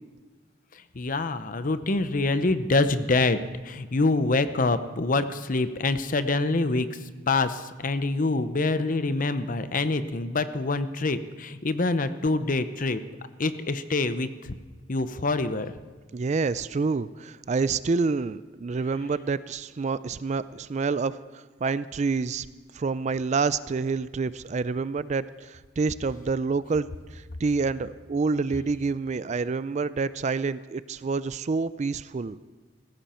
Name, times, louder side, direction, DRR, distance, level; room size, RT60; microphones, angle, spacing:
voice 1, 0.7-13.0 13.4-14.6 14.9-15.7, left 3 dB, 45° left, 11 dB, 0.7 m, -26 dB
voice 2, 16.1-22.5 22.7-32.4, right 4 dB, 40° right, 16 dB, 0.4 m, -28 dB
16.0 x 15.0 x 4.4 m, 1.4 s
head